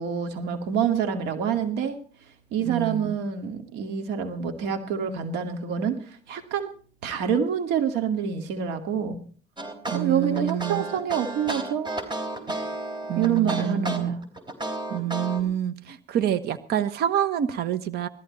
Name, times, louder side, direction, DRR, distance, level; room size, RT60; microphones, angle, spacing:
voice 1, 0.0-2.0 2.5-6.0 6.3-6.7 7.0-9.2 9.9-11.9 13.2-14.2, right 7 dB, 90° right, 7 dB, 2.3 m, -26 dB
voice 2, 2.6-3.2 9.9-10.8 13.1-14.2 14.9-18.1, right 10 dB, 75° right, 12 dB, 1.3 m, -27 dB
sound 1, 9.6-15.4, right 2 dB, 25° right, 3.9 m, -32 dB
18.5 x 14.5 x 4.3 m, 0.42 s
cardioid pair, 110°, 17 cm